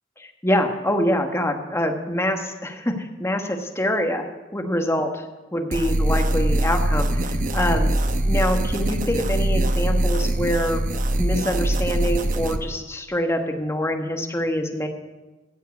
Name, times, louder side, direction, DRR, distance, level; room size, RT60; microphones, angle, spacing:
voice 1, 0.2-4.3 4.5-5.2 5.5-7.3 7.5-7.9 8.3-10.8 11.2-14.9, equal, 15° left, 4 dB, 1.2 m, -25 dB
sound 1, 5.7-12.6, right 1 dB, 45° right, 0.8 m, -22 dB
14.5 x 7.6 x 8.2 m, 1.2 s
head